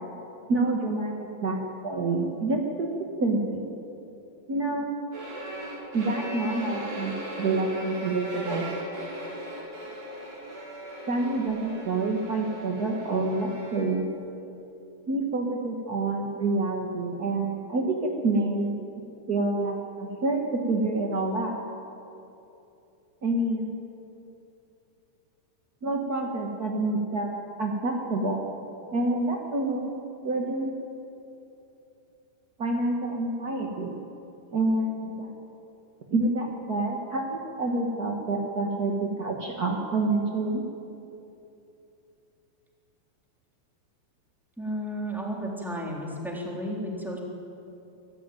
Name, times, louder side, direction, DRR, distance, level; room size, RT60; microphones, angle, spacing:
voice 1, 0.5-1.6 1.8-2.9 3.2-3.6 4.5-4.9 5.9-8.6 11.1-14.0 15.1-21.5 23.2-23.7 25.8-27.3 27.6-28.4 28.9-30.0 30.2-30.7 32.6-34.0 34.5-35.3 36.1-40.7, right 2 dB, 50° right, 0 dB, 1.1 m, -27 dB
sound 1, 5.1-13.9, right 1 dB, 65° right, 7.1 m, -38 dB
voice 2, 44.6-47.2, equal, ahead, -2 dB, 3.3 m, -33 dB
25.5 x 14.5 x 9.1 m, 2.8 s
omnidirectional pair, 4.3 m